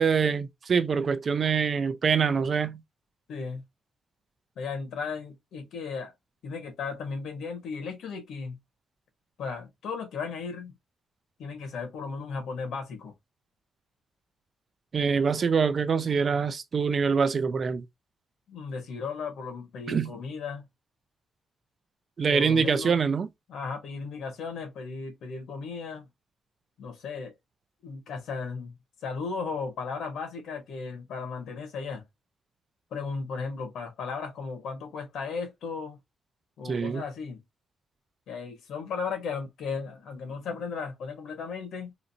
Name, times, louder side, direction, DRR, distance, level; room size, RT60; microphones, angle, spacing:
voice 1, 0.0-2.8 14.9-17.8 19.9-20.1 22.2-23.3 36.7-37.0, right 6 dB, 40° right, 0.5 m, -25 dB
voice 2, 3.3-3.6 4.5-6.1 6.4-8.6 9.4-10.7 11.4-13.1 18.5-20.7 22.3-23.0 23.5-26.1 26.8-27.3 27.8-28.8 29.0-32.0 32.9-36.0 36.6-37.4 38.3-41.9, left 5 dB, 75° left, 1.6 m, -35 dB
3.9 x 3.1 x 2.8 m
cardioid pair, 145°, 0 cm